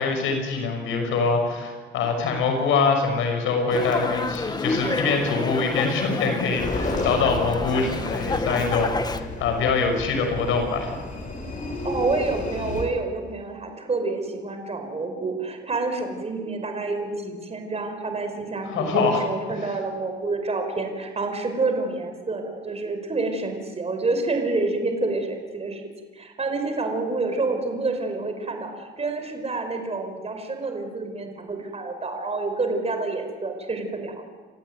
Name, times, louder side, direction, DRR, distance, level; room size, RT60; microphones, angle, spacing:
voice 1, 0.0-10.9 18.6-19.2, left 4 dB, 90° left, 4 dB, 6.1 m, -24 dB
Dog, 3.7-9.2, left 3 dB, 20° left, 1.4 m, -29 dB
sound 1, 6.6-12.8, left 2 dB, 40° left, 6.2 m, -32 dB
voice 2, 11.8-25.8 26.2-34.2, right 3 dB, 30° right, 5 dB, 5.2 m, -28 dB
29.0 x 15.0 x 9.4 m, 1.4 s
cardioid pair, 90°, 20 cm